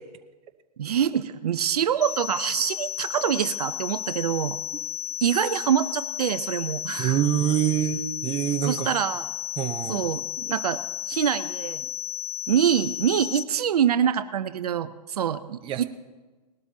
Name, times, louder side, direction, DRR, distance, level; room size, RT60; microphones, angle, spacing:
voice 1, 0.8-4.6 5.2-7.2 8.6-9.3 9.9-11.9 12.5-15.8, right 9 dB, 65° right, 11 dB, 0.7 m, -25 dB
sound 1, 2.0-13.4, left 12 dB, 15° left, 0.4 m, -33 dB
voice 2, 7.0-8.9 9.6-10.0 15.6-15.8, right 11 dB, 25° right, 7 dB, 0.9 m, -25 dB
20.0 x 12.5 x 2.9 m, 1.2 s
hypercardioid pair, 120°, 21 cm